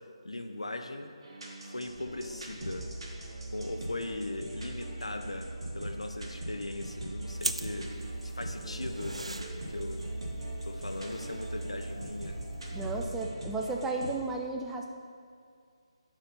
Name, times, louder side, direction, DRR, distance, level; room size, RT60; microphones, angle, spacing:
voice 1, 0.2-1.1 1.6-2.9 3.5-7.9 8.2-10.0 10.6-12.4, left 2 dB, 75° left, 6 dB, 0.7 m, -39 dB
sound 1, 1.2-14.1, equal, 60° right, 1.5 m, -43 dB
sound 2, 1.9-13.3, right 2 dB, 30° right, 0.9 m, -42 dB
sound 3, 7.4-13.1, right 2 dB, 75° right, 0.4 m, -42 dB
voice 2, 12.7-14.9, right 3 dB, 5° right, 1 dB, 0.4 m, -34 dB
7.5 x 5.1 x 5.6 m, 2.2 s
figure-of-eight pair, 150°, 3 cm